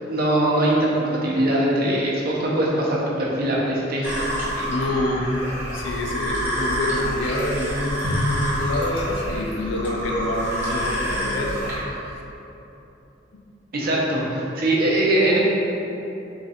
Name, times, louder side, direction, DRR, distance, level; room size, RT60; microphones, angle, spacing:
voice 1, 0.1-4.7 8.0-8.1 13.7-15.4, right 1 dB, 50° right, -4 dB, 0.7 m, -22 dB
sound 1, 4.0-11.8, equal, 10° right, 0.8 m, -28 dB
voice 2, 4.7-5.4 5.7-12.1, left 1 dB, 75° left, -1 dB, 0.5 m, -27 dB
3.7 x 3.0 x 4.0 m, 3.0 s
head